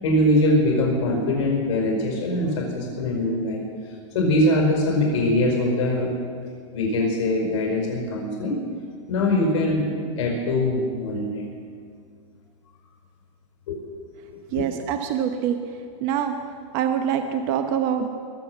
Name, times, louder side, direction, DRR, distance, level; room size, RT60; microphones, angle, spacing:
voice 1, 0.0-3.6 4.1-6.1 6.7-8.6 9.1-9.9 10.2-11.4 13.7-13.8 14.6-14.7, left 1 dB, 65° left, 0 dB, 5.0 m, -22 dB
voice 2, 14.5-15.6 16.0-16.3 16.7-18.1, right 9 dB, 40° right, 6 dB, 0.9 m, -24 dB
21.5 x 7.9 x 7.4 m, 2.1 s
supercardioid pair, 150°, 17 cm